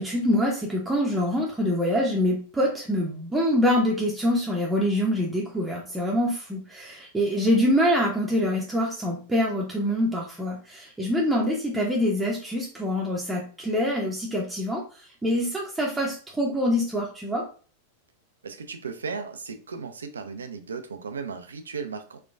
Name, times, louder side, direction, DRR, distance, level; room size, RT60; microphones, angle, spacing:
voice 1, 0.0-14.8 15.2-17.4, equal, 10° right, -3 dB, 0.7 m, -25 dB
voice 2, 18.4-22.2, right 5 dB, 70° right, 7 dB, 0.4 m, -36 dB
4.3 x 2.2 x 2.3 m, 0.38 s
figure-of-eight pair, 90°, 0 cm